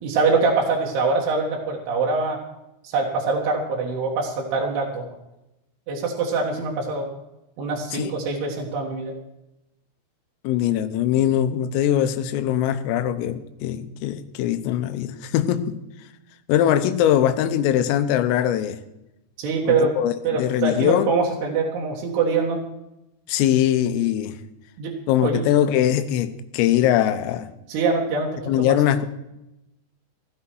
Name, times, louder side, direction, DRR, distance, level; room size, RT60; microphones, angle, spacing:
voice 1, 0.0-2.4 2.8-5.1 5.9-7.1 7.6-9.1 19.4-19.9 20.2-22.6 24.8-25.0 25.2-25.4 27.7-28.3 28.6-28.8, right 4 dB, 65° right, -2 dB, 3.1 m, -24 dB
voice 2, 10.5-15.8 16.5-18.8 19.7-21.1 23.3-24.4 25.1-27.5 28.5-29.1, left 11 dB, 90° left, 11 dB, 3.6 m, -21 dB
16.5 x 14.5 x 4.6 m, 0.91 s
omnidirectional pair, 5.8 m